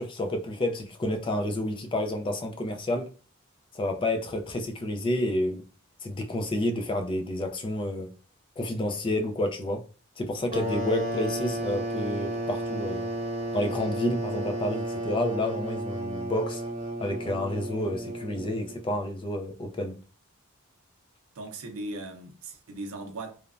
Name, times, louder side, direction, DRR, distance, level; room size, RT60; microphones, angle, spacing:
voice 1, 0.0-3.1 3.7-5.6 6.0-8.1 8.6-9.8 10.2-13.1 13.5-16.6 17.0-20.0, left 1 dB, 25° left, 0.3 m, -30 dB
sound 1, 10.5-18.9, right 1 dB, 30° right, 0.8 m, -32 dB
voice 2, 21.4-23.3, right 2 dB, 85° right, 0.6 m, -38 dB
3.1 x 2.1 x 2.4 m
head